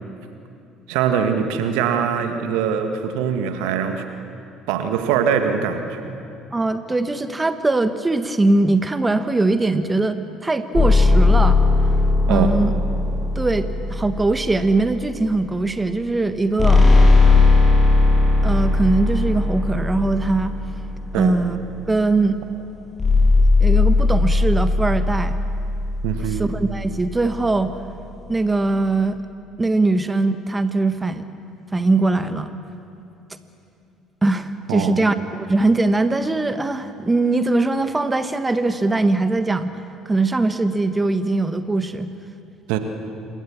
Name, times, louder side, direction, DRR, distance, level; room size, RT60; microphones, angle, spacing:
voice 1, 0.9-4.0 4.7-6.1 12.3-12.6 21.1-21.4 26.0-26.5 34.7-35.0 42.7-42.8, right 7 dB, 65° right, 6 dB, 1.8 m, -22 dB
voice 2, 6.5-11.6 12.3-12.7 13.3-16.9 18.4-20.5 21.1-21.6 21.9-22.4 23.6-25.4 26.3-27.7 28.3-29.2 29.6-31.2 31.7-32.5 34.2-39.7 40.1-42.1, right 2 dB, 20° right, 10 dB, 1.4 m, -21 dB
sound 1, 10.7-15.2 16.6-21.4 23.0-27.3, left 3 dB, 30° left, 7.2 m, -18 dB
27.5 x 22.5 x 7.3 m, 2.6 s
figure-of-eight pair, 55°, 0 cm